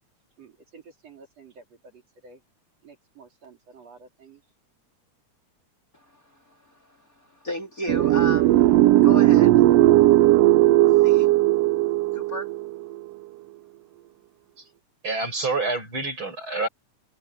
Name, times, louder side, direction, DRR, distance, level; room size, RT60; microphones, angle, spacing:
voice 1, 0.4-2.4 2.8-4.4, right 4 dB, 60° right, 4.7 m, -50 dB
voice 2, 5.9-8.7 9.0-9.6 11.0-11.3 12.1-12.5, left 1 dB, 30° left, 3.5 m, -35 dB
sound 1, 7.9-13.0, right 16 dB, 80° right, 1.4 m, -17 dB
voice 3, 15.0-16.7, right 3 dB, 40° right, 8.8 m, -27 dB
omnidirectional pair, 3.3 m